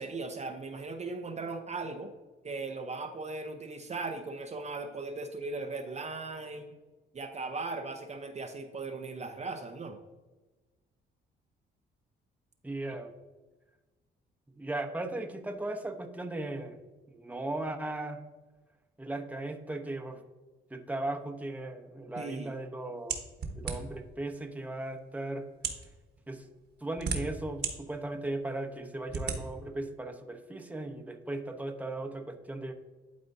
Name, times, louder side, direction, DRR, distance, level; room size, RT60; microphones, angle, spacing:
voice 1, 0.0-2.1 2.4-6.8 7.1-10.0 12.9-13.0 22.2-22.6, right 3 dB, 35° right, 5 dB, 0.6 m, -38 dB
voice 2, 12.6-13.1 14.6-16.8 17.2-18.2 19.0-20.2 20.7-23.2 23.5-25.5 26.3-26.5 26.8-32.7, right 2 dB, 5° right, 5 dB, 0.8 m, -37 dB
sound 1, 23.1-24.1 24.9-25.0 25.5-25.9 26.6-27.7 28.2-28.3 29.1-29.4, right 5 dB, 55° right, 1.2 m, -34 dB
11.5 x 4.2 x 2.6 m, 1.2 s
cardioid pair, 90°, 20 cm